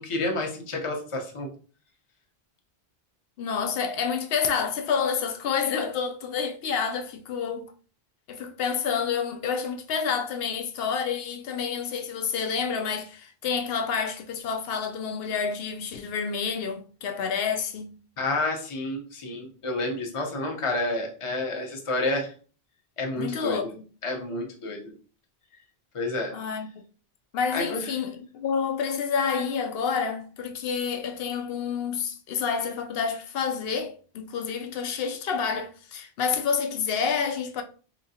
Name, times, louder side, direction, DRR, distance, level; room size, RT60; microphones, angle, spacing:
voice 1, 0.0-1.5 18.2-22.3 23.0-23.7 24.0-24.9 25.9-26.3 27.5-27.9, left 2 dB, 35° left, 0.7 m, -29 dB
voice 2, 3.4-7.7 8.3-17.9 23.1-23.7 26.3-26.8 27.3-37.6, left 6 dB, 75° left, 0.8 m, -29 dB
3.9 x 3.0 x 2.7 m
omnidirectional pair, 1.0 m